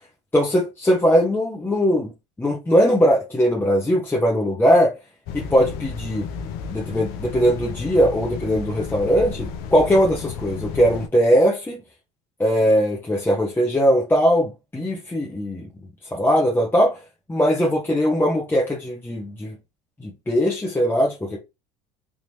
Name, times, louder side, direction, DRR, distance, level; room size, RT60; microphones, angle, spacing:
voice 1, 0.3-2.1 2.4-4.9 5.3-6.2 6.7-11.8 12.4-15.7 16.1-17.0 17.3-19.5 20.0-21.4, equal, 10° left, 1.0 m, -20 dB
sound 1, 5.3-11.1, left 6 dB, 65° left, 0.6 m, -33 dB
3.6 x 2.9 x 2.8 m
hypercardioid pair, 85°, 18 cm